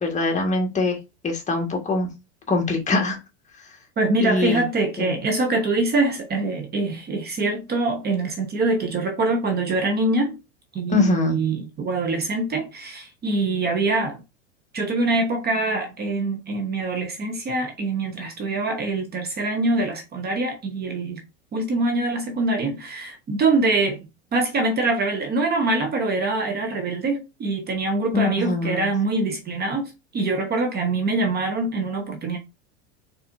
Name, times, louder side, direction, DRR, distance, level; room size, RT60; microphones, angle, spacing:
voice 1, 0.0-1.0 1.2-2.1 2.5-3.2 4.2-4.6 5.0-5.2 10.9-11.4 28.1-28.9, left 3 dB, 20° left, 1.6 m, -23 dB
voice 2, 4.0-10.4 10.7-14.2 14.7-21.2 21.5-32.4, right 2 dB, 30° right, 1.0 m, -24 dB
4.2 x 4.0 x 2.6 m
hypercardioid pair, 105°, 35 cm